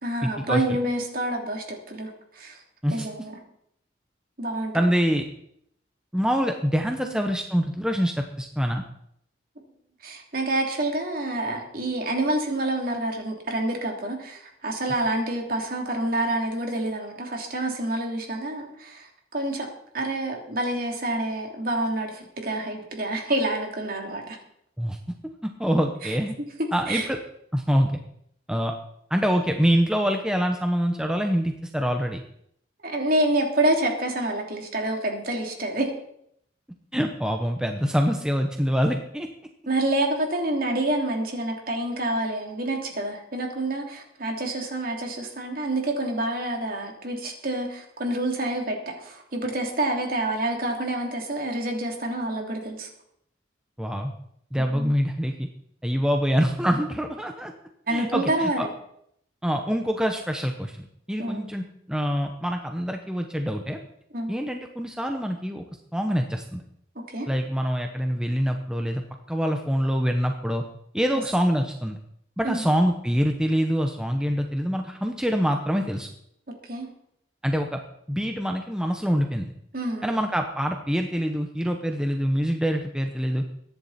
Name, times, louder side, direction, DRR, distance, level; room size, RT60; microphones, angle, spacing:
voice 1, 0.0-2.1 2.3-2.6 2.9-3.4 4.4-4.7 10.0-19.7 19.9-24.4 26.0-26.5 26.9-27.1 32.8-35.9 39.7-52.9 54.5-54.9 57.9-58.7 61.2-61.5 64.1-64.3 66.9-67.3 71.1-71.2 72.4-72.7 76.6-76.9 79.7-80.2, right 1 dB, 50° right, 1 dB, 3.1 m, -28 dB
voice 2, 4.7-5.2 6.1-8.8 24.8-25.0 25.4-26.4 26.7-27.2 27.5-28.0 28.5-28.7 29.1-32.2 36.9-39.3 53.8-54.1 54.5-55.5 55.8-57.5 57.9-58.7 59.4-63.8 64.3-65.6 65.9-66.6 67.3-69.0 69.3-70.6 70.9-72.0 72.4-76.1 77.4-77.8 78.1-79.5 80.0-83.4, equal, 5° right, 4 dB, 0.9 m, -25 dB
22.5 x 10.5 x 4.3 m, 0.72 s
head